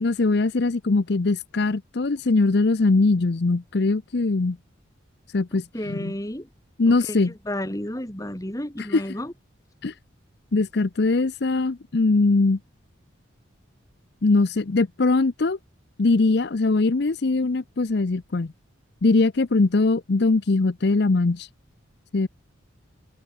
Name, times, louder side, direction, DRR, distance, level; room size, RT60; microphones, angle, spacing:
voice 1, 0.0-4.6 5.3-6.1 6.8-7.3 8.8-9.0 9.8-9.9 10.5-12.6 14.2-15.6 16.0-18.5 19.0-21.5 22.1-22.3, left 3 dB, 55° left, 0.6 m, -21 dB
voice 2, 5.7-6.5 6.9-9.3, left 1 dB, 15° left, 2.0 m, -32 dB
head